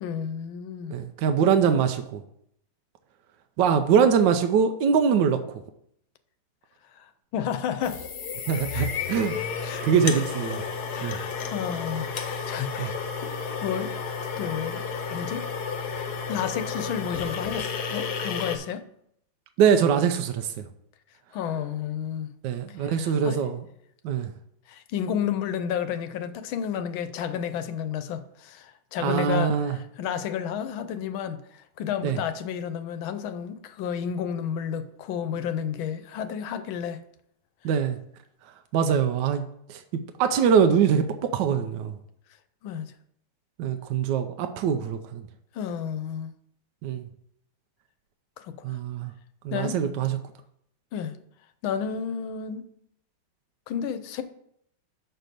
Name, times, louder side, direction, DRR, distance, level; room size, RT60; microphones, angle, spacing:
voice 1, 0.0-0.9 7.0-7.1 7.3-8.0 8.7-8.9 9.6-9.8 10.1-10.2 10.9-12.9 13.6-13.9 14.4-14.8 15.1-15.5 16.3-18.8 21.3-22.3 22.8-23.4 24.7-37.0 42.6-42.9 45.5-46.3 48.4-48.6 49.5-49.8 50.9-51.1 51.6-52.6 53.7-54.2, left 8 dB, 80° left, 1.4 m, -31 dB
voice 2, 0.9-2.2 3.6-5.4 8.5-9.4 9.8-10.6 11.0-11.2 12.8-12.9 19.6-20.5 22.4-23.6 24.0-24.3 29.0-29.8 32.0-32.2 37.6-38.0 38.7-41.9 43.6-45.2 46.8-47.1 48.6-49.1 49.4-50.2, right 7 dB, 75° right, 1.1 m, -23 dB
sound 1, 7.8-18.6, left 6 dB, 60° left, 1.2 m, -32 dB
6.6 x 4.5 x 6.5 m
omnidirectional pair, 2.2 m